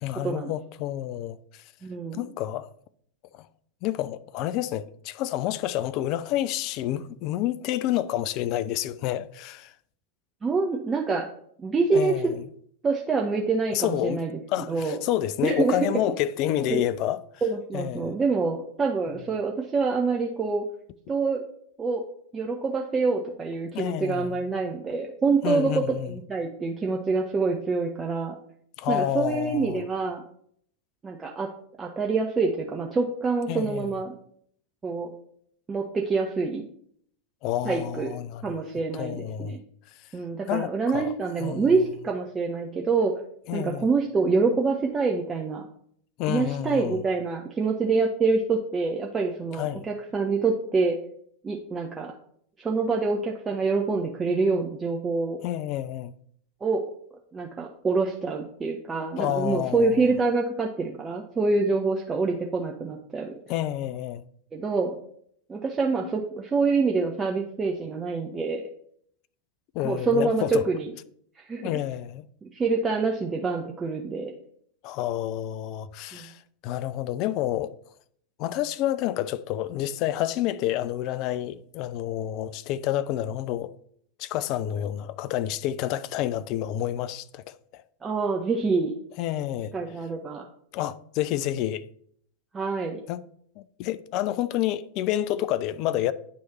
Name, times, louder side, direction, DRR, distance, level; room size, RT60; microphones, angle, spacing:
voice 1, 0.0-1.6 2.1-2.7 3.3-3.5 3.8-9.7 11.9-12.4 13.7-14.2 14.5-17.2 17.7-18.2 23.7-24.4 25.4-26.1 28.8-29.8 33.5-33.9 37.4-38.6 38.9-39.6 40.5-41.1 41.4-41.8 43.5-43.9 46.2-47.0 49.5-49.9 55.4-56.1 59.2-59.9 63.5-64.2 69.7-70.7 71.6-72.3 74.8-77.7 78.4-83.7 84.2-87.8 89.2-89.7 90.7-91.9 93.1-93.2 93.6-96.1, left 12 dB, 40° left, 0.3 m, -29 dB
voice 2, 1.8-2.3 10.4-11.3 11.6-12.1 12.8-14.4 14.7-15.0 15.4-15.8 16.7-16.8 17.4-20.6 21.1-21.4 21.8-22.0 22.3-25.8 26.1-28.4 28.9-30.2 31.0-31.5 31.8-34.1 34.8-35.1 35.7-36.6 37.6-38.1 38.4-39.6 40.1-43.1 43.5-45.7 46.3-51.0 51.4-52.1 52.6-55.4 56.6-56.8 57.3-63.3 64.5-64.9 65.5-68.6 69.8-70.9 71.4-71.7 72.4-74.3 76.1-76.3 88.0-88.9 89.7-90.5 92.5-93.0, right 4 dB, 20° right, 0.6 m, -26 dB
9.3 x 3.2 x 4.0 m
figure-of-eight pair, 90°, 0 cm